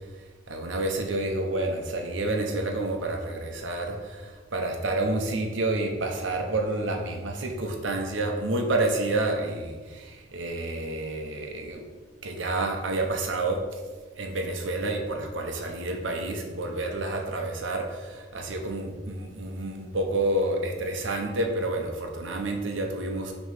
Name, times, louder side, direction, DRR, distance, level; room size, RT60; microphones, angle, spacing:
voice 1, 0.5-11.8 12.2-13.6 14.2-23.3, right 2 dB, 80° right, 2 dB, 0.9 m, -29 dB
6.1 x 3.2 x 5.6 m, 1.3 s
head